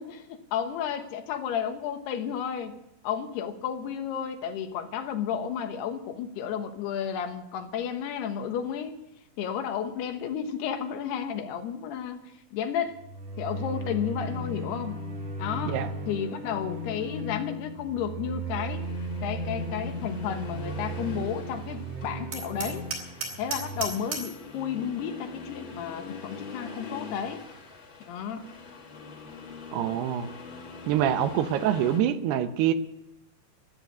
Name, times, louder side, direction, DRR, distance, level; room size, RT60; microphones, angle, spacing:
voice 1, 0.0-2.8 3.0-9.0 9.4-13.0 13.4-15.0 15.4-15.8 16.1-18.9 19.2-22.9 23.4-27.4 28.1-28.5 31.2-31.6, left 8 dB, 80° left, 7 dB, 3.2 m, -32 dB
sound 1, 12.9-23.9, right 1 dB, 45° right, 3.4 m, -36 dB
Accelerating revving vroom, 18.5-32.0, left 4 dB, 45° left, 1.7 m, -44 dB
Hammer, 22.3-24.4, right 4 dB, 60° right, 5.4 m, -35 dB
voice 2, 29.7-30.3 30.9-32.7, right 10 dB, 80° right, 10 dB, 2.8 m, -25 dB
14.0 x 10.5 x 8.4 m, 0.81 s
omnidirectional pair, 4.7 m